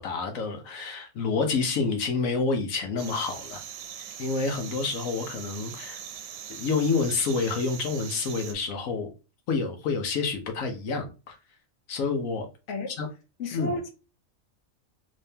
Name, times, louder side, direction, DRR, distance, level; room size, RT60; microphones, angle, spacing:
voice 1, 0.0-3.6 3.9-6.0 6.5-9.1 9.5-11.4 11.9-12.5 12.9-13.1 13.5-13.8, left 4 dB, 85° left, 1.2 m, -28 dB
sound 1, 3.0-8.5, right 8 dB, 85° right, 1.0 m, -41 dB
voice 2, 13.4-13.9, left 2 dB, 65° left, 1.0 m, -31 dB
3.1 x 2.8 x 3.4 m
omnidirectional pair, 1.4 m